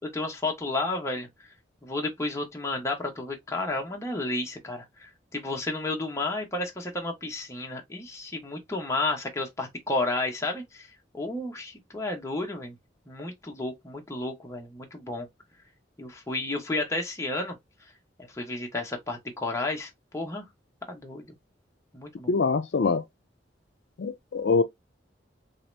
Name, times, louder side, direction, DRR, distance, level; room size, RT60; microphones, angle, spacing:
voice 1, 0.1-1.3 1.8-10.9 11.1-12.8 13.1-15.3 16.0-17.5 18.3-20.4 20.9-21.2 21.9-22.3, left 2 dB, 15° left, 0.9 m, -32 dB
voice 2, 22.3-23.0 24.0-24.6, left 4 dB, 65° left, 0.4 m, -24 dB
3.0 x 2.8 x 3.2 m
head